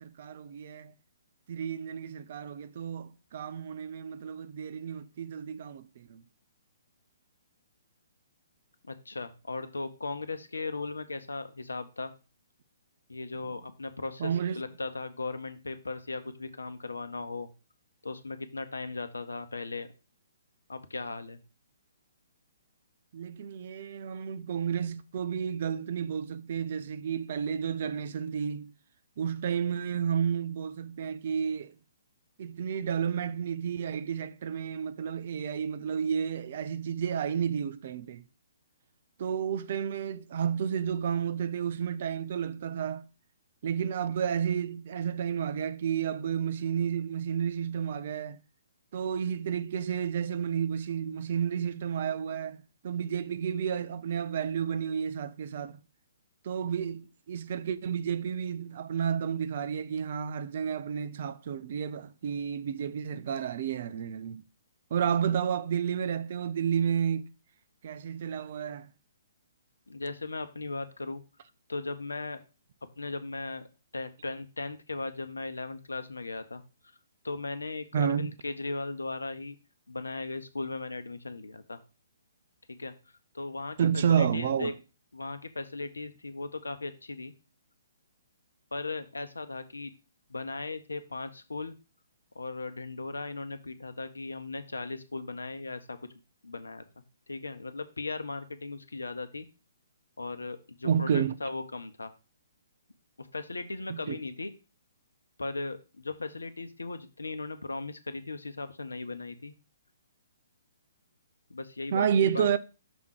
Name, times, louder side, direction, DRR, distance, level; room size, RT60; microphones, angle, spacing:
voice 1, 0.0-0.9 1.5-6.2 14.2-14.6 23.1-28.7 29.2-31.7 32.4-38.2 39.2-43.0 43.6-48.4 48.9-52.6 52.8-55.8 56.4-64.4 64.9-67.3 67.8-68.9 77.9-78.3 83.8-84.7 100.8-101.3 103.9-104.2 111.9-112.6, right 8 dB, 45° right, 0.5 m, -31 dB
voice 2, 8.9-12.1 13.1-17.5 18.0-19.9 20.7-21.4 69.9-71.2 71.7-72.4 73.0-73.6 73.9-76.6 77.2-79.6 79.9-81.8 82.7-82.9 83.3-84.7 85.1-87.3 88.7-89.9 90.3-91.8 92.3-96.0 96.4-96.8 97.3-99.5 100.2-102.1 103.2-104.5 105.4-109.5 111.5-112.1 112.3-112.5, left 3 dB, 75° left, 0.8 m, -37 dB
6.1 x 3.6 x 5.9 m
figure-of-eight pair, 125°, 0 cm